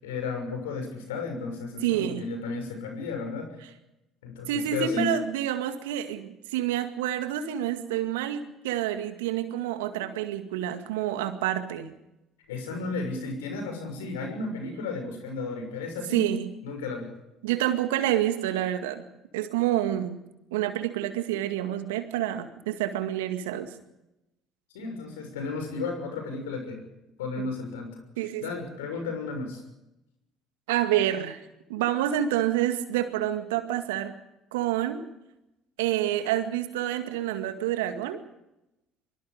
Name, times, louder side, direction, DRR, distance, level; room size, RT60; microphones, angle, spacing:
voice 1, 0.0-3.6 4.2-5.1 12.5-16.3 16.6-17.1 24.7-26.8 27.2-28.0 28.4-29.6, left 3 dB, 80° left, 5 dB, 6.4 m, -33 dB
voice 2, 1.8-2.2 4.5-11.9 16.1-16.5 17.4-19.0 19.3-20.2 20.5-23.7 27.4-27.5 28.2-28.4 30.7-31.4 31.7-34.1 34.5-35.0 35.8-38.2, right 12 dB, 75° right, 8 dB, 2.1 m, -28 dB
24.5 x 24.0 x 5.1 m, 0.91 s
hypercardioid pair, 60°, 0 cm